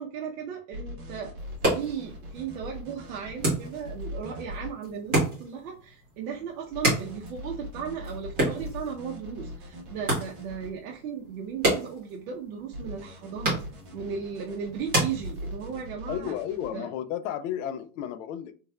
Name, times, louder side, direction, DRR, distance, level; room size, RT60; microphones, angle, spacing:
voice 1, 0.0-1.3 1.7-13.6 13.9-16.3 16.7-16.9, right 7 dB, 75° right, 0.8 m, -36 dB
sound 1, 0.7-4.7 6.7-10.7 12.7-16.7, equal, 50° right, 1.3 m, -41 dB
sound 2, 1.4-15.9, right 1 dB, 20° right, 1.6 m, -32 dB
voice 2, 16.1-18.5, left 10 dB, 60° left, 0.5 m, -33 dB
3.4 x 3.2 x 2.2 m
supercardioid pair, 170°, 44 cm